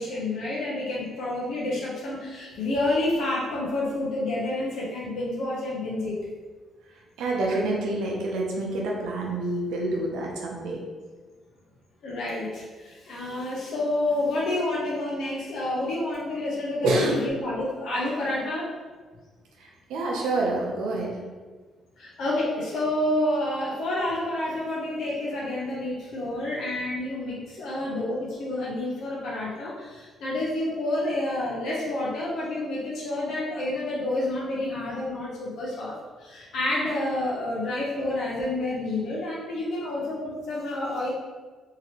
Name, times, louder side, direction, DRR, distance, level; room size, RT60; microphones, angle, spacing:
voice 1, 0.0-6.2 12.0-18.7 22.0-41.1, left 1 dB, 75° left, -5 dB, 0.6 m, -29 dB
voice 2, 7.2-10.8 16.8-17.2 19.6-21.2, right 2 dB, 90° right, -1 dB, 0.6 m, -27 dB
2.9 x 2.6 x 2.8 m, 1.4 s
cardioid pair, 90°, 0 cm